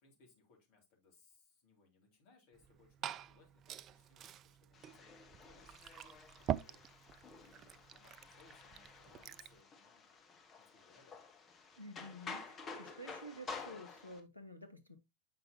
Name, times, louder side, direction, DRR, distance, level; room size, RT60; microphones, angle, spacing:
voice 1, 0.0-6.8 7.3-10.1 10.6-11.3, left 4 dB, 45° left, 2.5 m, -68 dB
Liquid, 2.5-9.6, right 10 dB, 30° right, 0.3 m, -45 dB
sound 1, 4.7-14.2, left 4 dB, 25° left, 1.2 m, -51 dB
voice 2, 11.8-15.0, equal, 85° left, 1.0 m, -51 dB
7.6 x 5.4 x 2.8 m
figure-of-eight pair, 90°, 0 cm